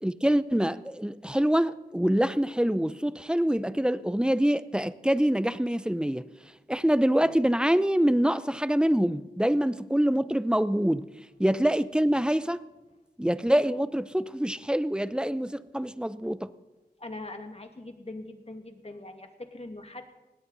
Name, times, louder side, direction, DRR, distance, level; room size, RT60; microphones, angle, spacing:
voice 1, 0.0-6.3 6.7-11.1 11.4-12.6 13.2-16.5, equal, 5° right, 15 dB, 0.7 m, -25 dB
voice 2, 17.0-20.2, left 2 dB, 40° left, 5 dB, 2.3 m, -42 dB
19.5 x 17.0 x 4.1 m, 1.1 s
cardioid pair, 45°, 16 cm